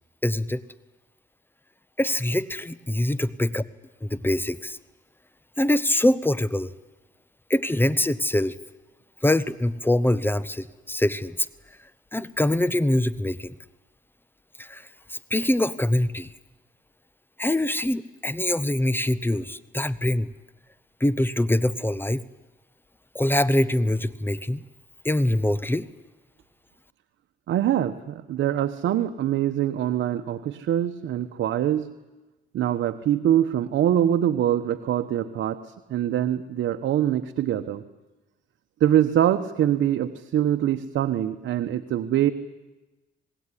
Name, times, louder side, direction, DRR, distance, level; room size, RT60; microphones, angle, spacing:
voice 1, 0.2-0.6 2.0-3.6 4.0-4.8 5.6-6.7 7.5-8.5 9.2-11.4 12.1-13.5 14.6-14.8 15.1-16.3 17.4-20.3 21.0-22.2 23.1-24.6 25.0-25.9, left 1 dB, 10° left, 17 dB, 1.0 m, -24 dB
voice 2, 27.5-31.9 32.5-35.6 35.9-37.8 38.8-42.3, right 11 dB, 75° right, 7 dB, 1.1 m, -24 dB
27.0 x 20.0 x 9.9 m, 1.1 s
cardioid pair, 90°, 20 cm